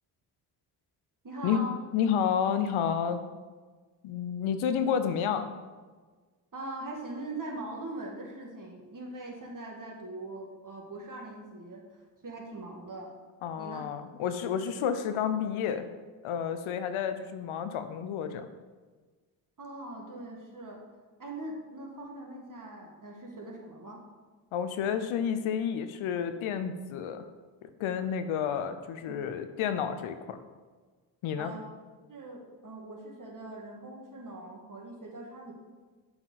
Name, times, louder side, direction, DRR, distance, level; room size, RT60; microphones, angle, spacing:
voice 1, 1.2-1.8 6.5-11.8 12.2-13.1 13.6-13.9 14.7-14.8 19.6-20.8 21.2-24.0 29.1-29.4 31.4-31.6 32.1-35.5, right 2 dB, 40° right, 0 dB, 1.9 m, -41 dB
voice 2, 1.9-3.3 4.0-5.5 13.4-15.9 16.2-18.5 24.5-27.2 27.8-30.4 31.2-31.5, left 8 dB, 80° left, 9 dB, 0.7 m, -30 dB
7.6 x 4.4 x 4.1 m, 1.4 s
supercardioid pair, 45°, 48 cm